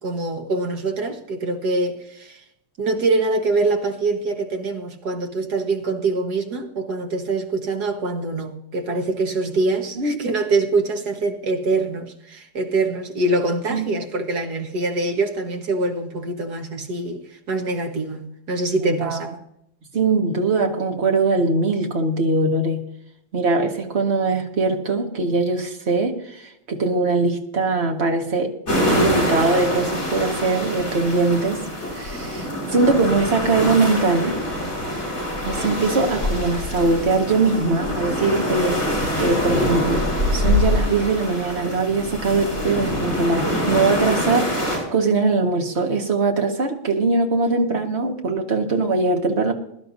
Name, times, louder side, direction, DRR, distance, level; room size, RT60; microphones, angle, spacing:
voice 1, 0.0-2.4 2.8-19.3, right 2 dB, 55° right, 1.9 m, -24 dB
voice 2, 18.8-19.3 19.9-22.8 23.3-28.5 28.9-31.6 31.9-34.4 35.4-38.8 39.2-40.0 40.3-44.5 44.9-49.5, right 3 dB, 35° right, 1.7 m, -21 dB
sound 1, 28.7-44.8, left 1 dB, 40° left, 6.3 m, -24 dB
22.0 x 11.5 x 2.7 m
omnidirectional pair, 2.2 m